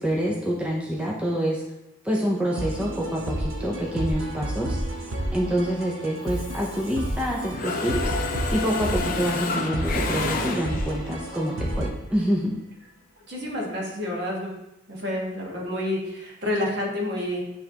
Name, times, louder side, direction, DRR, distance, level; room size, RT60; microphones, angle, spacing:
voice 1, 0.0-1.6 2.0-4.8 5.0-12.6, equal, 5° right, -3 dB, 0.5 m, -27 dB
sound 1, 2.5-11.9, right 1 dB, 85° right, 0.9 m, -31 dB
Mechanisms, 6.3-7.2 7.5-11.1, left 4 dB, 45° left, 0.5 m, -30 dB
sound 2, 7.5-13.2, left 3 dB, 65° left, 1.1 m, -43 dB
voice 2, 13.3-14.5 14.9-17.4, left 1 dB, 55° right, -3 dB, 1.5 m, -29 dB
9.9 x 3.3 x 2.8 m, 0.92 s
head